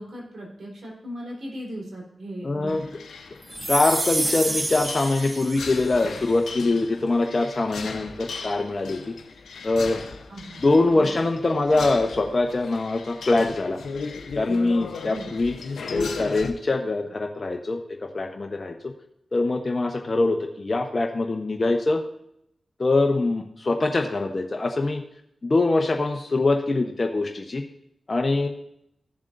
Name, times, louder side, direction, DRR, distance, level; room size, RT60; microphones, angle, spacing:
voice 1, 0.0-3.0 10.3-11.1 15.0-15.4, equal, 65° right, -3 dB, 3.9 m, -38 dB
voice 2, 2.4-2.8 3.7-9.1 9.6-10.0 10.6-13.8 14.4-15.5 15.9-17.8 18.1-18.7 19.3-22.0 22.8-25.0 25.4-27.6 28.1-28.5, left 2 dB, 45° left, 2 dB, 0.9 m, -23 dB
sound 1, 2.7-16.5, left 4 dB, 90° left, 0.9 m, -37 dB
sound 2, 3.5-6.0, right 2 dB, 30° right, 0.6 m, -28 dB
15.0 x 7.1 x 2.6 m, 0.77 s
cardioid pair, 45°, 0 cm